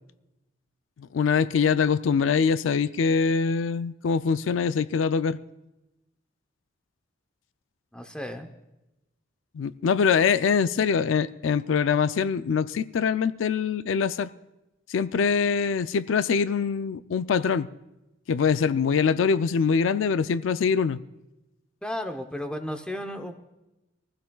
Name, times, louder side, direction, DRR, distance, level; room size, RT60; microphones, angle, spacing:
voice 1, 1.0-5.4 9.5-14.3 14.9-17.7 18.3-21.0, left 6 dB, 85° left, 0.4 m, -23 dB
voice 2, 7.9-8.5 21.8-23.4, left 1 dB, 5° left, 0.7 m, -34 dB
23.5 x 15.5 x 2.3 m
head